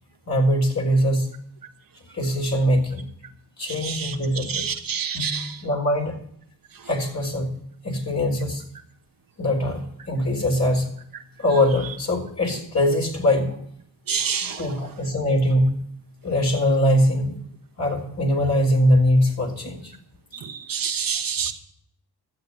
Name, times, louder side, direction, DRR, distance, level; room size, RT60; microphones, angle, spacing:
voice 1, 0.3-1.3 2.1-3.1 3.6-4.7 5.1-6.2 6.9-7.6 7.8-8.6 9.4-9.8 10.1-10.9 11.4-13.6 14.5-15.7 16.2-17.3 17.8-19.9, left 1 dB, 40° left, 1 dB, 4.2 m, -22 dB
voice 2, 3.8-4.1 4.5-5.5 14.1-14.6 20.4-21.5, right 7 dB, 55° right, 4 dB, 1.3 m, -27 dB
12.5 x 8.1 x 7.6 m, 0.68 s
cardioid pair, 60°, 40 cm